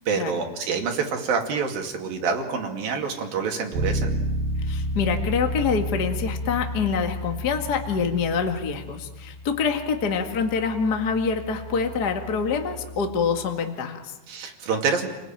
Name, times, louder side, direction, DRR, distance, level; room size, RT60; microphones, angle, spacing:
voice 1, 0.1-4.1 14.3-15.1, right 5 dB, 65° right, 3 dB, 4.1 m, -27 dB
Bass guitar, 3.7-13.5, equal, 80° right, 4.4 m, -32 dB
voice 2, 4.6-14.1, left 5 dB, 35° left, 4 dB, 1.7 m, -26 dB
29.5 x 19.0 x 9.0 m, 1.0 s
omnidirectional pair, 4.6 m